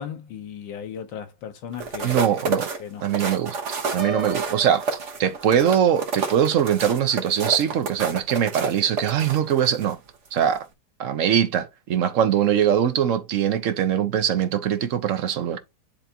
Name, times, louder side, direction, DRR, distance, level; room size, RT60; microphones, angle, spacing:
voice 1, 0.0-2.4 2.8-3.1 4.1-4.2, left 8 dB, 80° left, 1.7 m, -36 dB
sound 1, 1.7-9.9 10.4-10.6, right 4 dB, 45° right, 1.4 m, -29 dB
voice 2, 2.0-2.7 3.0-3.6 3.9-10.0 10.3-10.6 11.0-15.6, right 9 dB, 60° right, 0.8 m, -22 dB
Piano, 4.0-5.9, right 3 dB, 25° right, 0.8 m, -35 dB
10.0 x 3.4 x 2.8 m
omnidirectional pair, 2.0 m